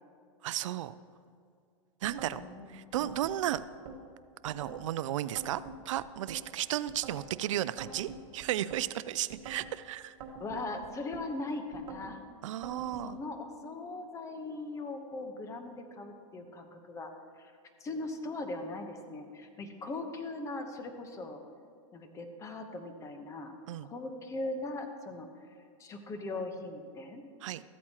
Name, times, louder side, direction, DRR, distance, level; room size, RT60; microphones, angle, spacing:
voice 1, 0.4-0.9 2.0-2.4 2.7-3.6 4.4-10.2 12.4-13.2 23.7-23.9 27.4-27.6, right 13 dB, 70° right, 16 dB, 0.4 m, -34 dB
sound 1, 2.0-2.4 2.9-4.0 4.4-4.9 5.3-6.4 6.9-7.3 7.8-8.8 9.3-9.7 10.2-11.3 11.7-12.1 12.6-13.1, right 4 dB, 50° right, 1.5 m, -45 dB
voice 2, 2.2-3.1 10.4-12.2 13.0-17.1 17.4-17.5 17.8-21.4 21.9-23.5 23.8-25.3 25.8-27.2, left 2 dB, 20° left, 6 dB, 0.9 m, -40 dB
14.0 x 8.5 x 2.9 m, 2.3 s
hypercardioid pair, 135°, 17 cm